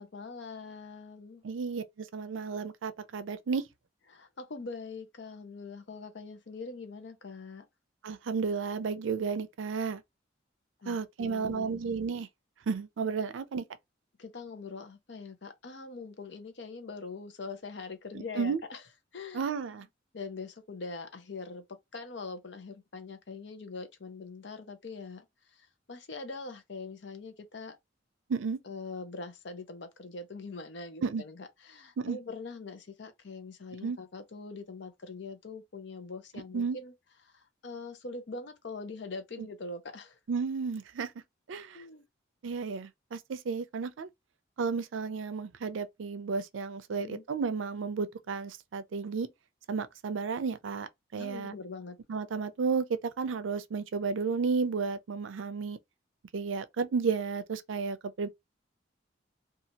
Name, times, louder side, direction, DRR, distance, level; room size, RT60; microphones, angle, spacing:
voice 1, 0.0-1.4 4.1-7.7 10.8-11.8 14.2-18.8 19.1-19.5 20.1-25.2 25.9-27.8 28.7-36.9 37.3-40.2 41.7-42.0 47.0-47.2 51.2-52.0, left 4 dB, 65° left, 0.6 m, -43 dB
voice 2, 1.4-3.7 8.0-10.0 10.9-12.3 12.7-13.6 18.1-18.6 19.3-19.8 28.3-28.6 31.0-31.2 32.0-32.2 33.8-34.0 36.5-36.8 39.4-39.5 40.3-41.1 41.5-41.8 42.4-44.1 44.6-49.3 49.7-51.5 52.1-55.8 56.3-58.3, right 5 dB, 90° right, 0.4 m, -32 dB
2.8 x 2.4 x 2.7 m
head